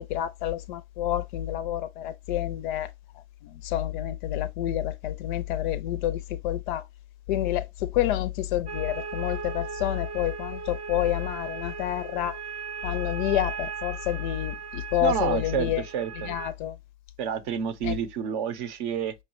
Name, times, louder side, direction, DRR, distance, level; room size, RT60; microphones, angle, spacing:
voice 1, 0.0-2.9 3.4-6.9 7.3-12.4 12.8-15.8 16.2-16.8 17.8-17.9, left 13 dB, 45° left, 0.5 m, -28 dB
sound 1, 8.7-16.5, right 6 dB, 15° right, 0.4 m, -38 dB
voice 2, 15.0-16.3 17.2-19.1, right 8 dB, 45° right, 0.7 m, -29 dB
5.5 x 2.1 x 3.0 m
hypercardioid pair, 120°, 35 cm